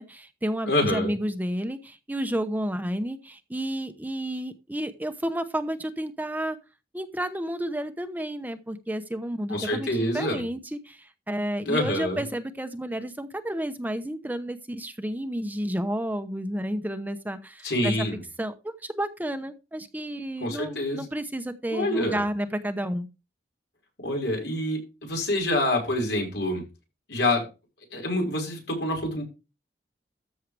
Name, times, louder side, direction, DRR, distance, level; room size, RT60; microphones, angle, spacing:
voice 1, 0.0-6.6 6.9-18.1 18.4-23.1, right 1 dB, 10° right, 9 dB, 0.8 m, -31 dB
voice 2, 0.7-1.1 9.5-10.4 11.6-12.2 17.6-18.2 20.4-21.0 21.7-22.2 24.0-26.6 27.1-27.5 27.9-29.2, left 1 dB, 80° left, 2 dB, 5.5 m, -26 dB
14.0 x 6.5 x 3.4 m, 0.28 s
head